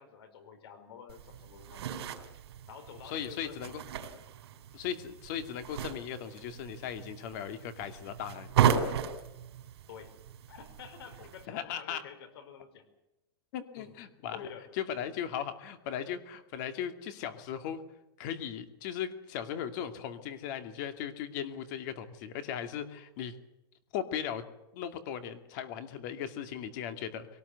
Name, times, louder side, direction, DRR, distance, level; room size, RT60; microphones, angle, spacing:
voice 1, 0.0-1.9 2.7-3.6 3.9-4.1 9.9-10.1 10.5-12.9 13.8-13.9 14.3-14.7, left 7 dB, 70° left, 10 dB, 4.8 m, -49 dB
sound 1, 1.1-11.4, right 8 dB, 80° right, 3.8 m, -35 dB
voice 2, 3.0-3.8 4.7-8.5 11.5-12.0 13.5-14.4 14.7-17.8 18.2-23.3 23.9-24.4 24.7-27.3, left 9 dB, 45° left, 8 dB, 2.4 m, -37 dB
23.5 x 18.5 x 8.2 m, 0.98 s
supercardioid pair, 165°, 13 cm